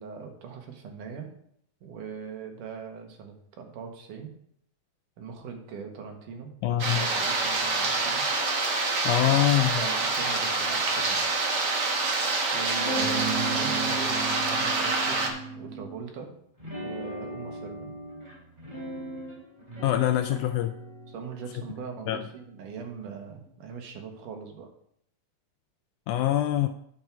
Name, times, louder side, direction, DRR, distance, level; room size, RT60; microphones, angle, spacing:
voice 1, 0.0-1.3 1.8-4.4 5.2-8.3 9.1-11.5 12.5-15.3 15.6-16.3 16.8-17.9 20.3-20.5 21.1-24.7, right 6 dB, 75° right, 3 dB, 2.9 m, -40 dB
voice 2, 6.6-7.1 9.0-9.8 19.8-20.7 22.1-22.2 26.1-26.7, left 13 dB, 80° left, 8 dB, 1.8 m, -24 dB
sound 1, 6.8-15.3, right 3 dB, 50° right, 1.3 m, -26 dB
sound 2, 12.7-16.1 16.6-23.4, right 2 dB, 15° right, 3.6 m, -37 dB
9.6 x 7.5 x 4.6 m, 0.69 s
omnidirectional pair, 3.8 m